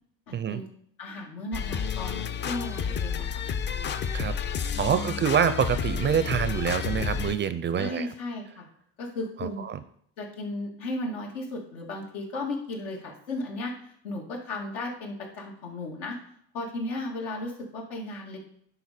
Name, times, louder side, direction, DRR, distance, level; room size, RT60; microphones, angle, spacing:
voice 1, 0.3-0.7 1.0-3.4 4.7-5.2 7.7-8.7 9.0-9.6 10.2-13.7 14.0-16.2 16.5-18.4, left 2 dB, 85° left, -1 dB, 2.1 m, -35 dB
sound 1, 1.5-7.4, left 7 dB, 30° left, 0.4 m, -30 dB
voice 2, 4.8-8.1 9.4-9.7, right 8 dB, 30° right, 13 dB, 0.4 m, -26 dB
11.0 x 4.0 x 4.3 m, 0.68 s
supercardioid pair, 100°, 40 cm